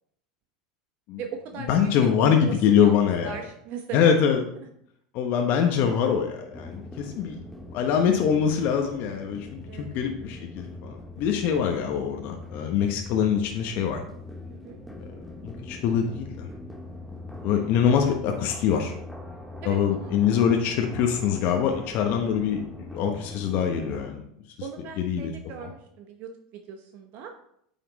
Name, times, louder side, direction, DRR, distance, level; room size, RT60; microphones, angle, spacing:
voice 1, 1.2-4.1 9.7-10.0 14.5-14.8 19.6-20.1 21.5-21.6 24.6-27.3, right 7 dB, 50° right, 5 dB, 1.0 m, -39 dB
voice 2, 1.7-3.4 3.9-4.4 5.1-7.4 7.7-14.0 15.4-16.5 17.4-18.9 19.6-24.2 25.0-25.3, left 7 dB, 55° left, 3 dB, 1.2 m, -24 dB
sound 1, 6.5-24.1, left 2 dB, ahead, 1.2 m, -42 dB
9.4 x 5.7 x 4.1 m, 0.72 s
hypercardioid pair, 90°, 4 cm